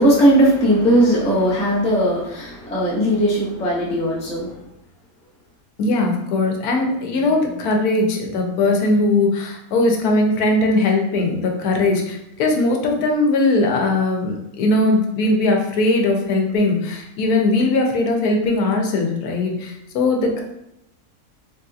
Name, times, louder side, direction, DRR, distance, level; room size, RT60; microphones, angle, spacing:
voice 1, 0.0-4.5, right 1 dB, 10° left, -5 dB, 0.4 m, -18 dB
voice 2, 5.8-20.4, left 2 dB, 90° left, 2 dB, 1.2 m, -19 dB
3.4 x 2.7 x 2.3 m, 0.80 s
omnidirectional pair, 1.6 m